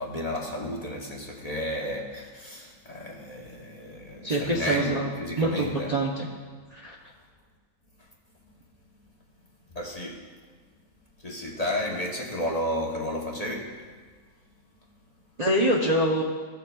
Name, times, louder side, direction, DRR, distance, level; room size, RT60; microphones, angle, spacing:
voice 1, 0.0-5.9 9.7-10.2 11.2-13.7, left 1 dB, 35° left, -2 dB, 1.0 m, -32 dB
voice 2, 4.2-5.1 5.3-6.3 6.7-6.9 15.4-16.2, right 1 dB, 40° right, -4 dB, 0.7 m, -25 dB
15.0 x 6.8 x 2.3 m, 1.5 s
omnidirectional pair, 1.4 m